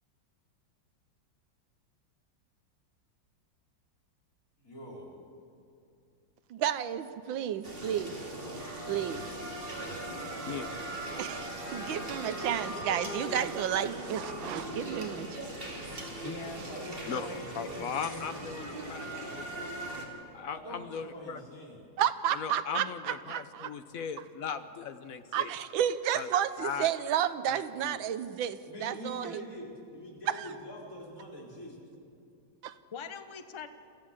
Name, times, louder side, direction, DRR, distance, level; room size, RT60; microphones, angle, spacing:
voice 1, 4.6-5.2 16.3-18.0 20.5-21.8 28.7-31.8, equal, 45° left, -3 dB, 4.6 m, -45 dB
voice 2, 6.5-8.1 8.9-9.2 11.2-15.3 22.0-23.7 25.3-29.4 30.4-30.5 32.6-32.7, right 10 dB, 80° right, 13 dB, 1.5 m, -32 dB
sound 1, 7.6-20.1, right 1 dB, 30° right, 2.7 m, -39 dB
voice 3, 16.2-19.1 32.9-33.7, left 3 dB, 25° left, 8 dB, 0.6 m, -44 dB
voice 4, 17.5-19.5 20.3-21.4 22.3-25.5 26.2-26.3 26.6-26.9 27.5-28.0, left 7 dB, 60° left, 10 dB, 1.0 m, -38 dB
27.5 x 14.5 x 7.4 m, 2.5 s
omnidirectional pair, 2.1 m